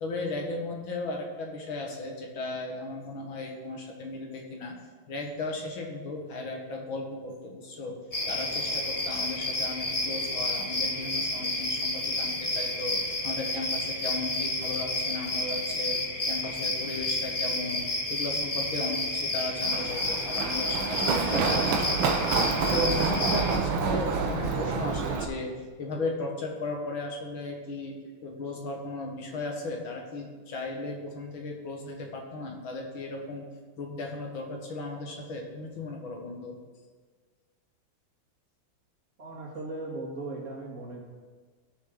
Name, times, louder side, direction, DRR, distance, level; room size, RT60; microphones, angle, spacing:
voice 1, 0.0-4.8 5.1-8.0 8.3-17.8 18.1-25.5 25.8-28.0 28.2-33.4 33.8-36.6, left 2 dB, 80° left, 1 dB, 2.4 m, -36 dB
sound 1, 8.1-23.6, left 1 dB, 25° left, 0.9 m, -30 dB
Run, 19.6-25.2, right 5 dB, 80° right, 1.7 m, -28 dB
voice 2, 39.2-41.0, right 2 dB, 40° right, -3 dB, 2.5 m, -37 dB
16.5 x 6.6 x 3.9 m, 1.5 s
omnidirectional pair, 2.2 m